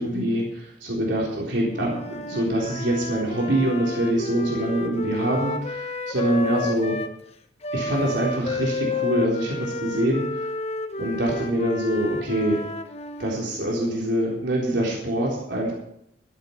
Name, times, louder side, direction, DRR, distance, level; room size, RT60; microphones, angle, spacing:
voice 1, 0.0-7.0 7.7-10.3 11.0-12.6 13.2-15.7, right 1 dB, 75° right, -3 dB, 4.0 m, -25 dB
Wind instrument woodwind instrument, 1.7-7.1 7.6-13.5, left 3 dB, 35° left, 1.0 m, -31 dB
12.5 x 10.5 x 5.9 m, 0.73 s
head